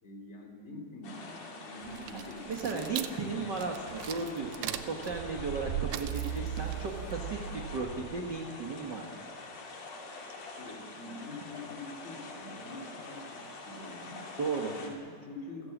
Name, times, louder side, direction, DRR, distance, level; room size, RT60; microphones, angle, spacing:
voice 1, 0.0-3.1 4.4-4.6 6.7-6.8 10.6-14.3 14.6-15.7, left 1 dB, 20° left, 2 dB, 3.5 m, -45 dB
sound 1, 1.0-14.9, left 3 dB, 70° left, 4.6 m, -46 dB
sound 2, 1.8-8.4, right 11 dB, 80° right, 2.7 m, -38 dB
voice 2, 2.5-7.4 7.7-9.0 14.4-14.7, right 4 dB, 45° right, 1 dB, 1.4 m, -35 dB
28.5 x 15.5 x 7.4 m, 2.3 s
omnidirectional pair, 4.3 m